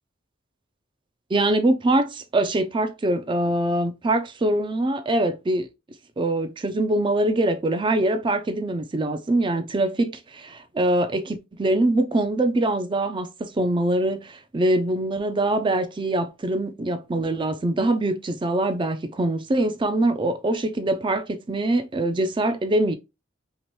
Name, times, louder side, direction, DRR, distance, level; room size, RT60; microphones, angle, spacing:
voice 1, 1.3-5.7 6.2-22.9, right 1 dB, 25° right, 0.4 m, -23 dB
3.0 x 2.9 x 3.1 m
head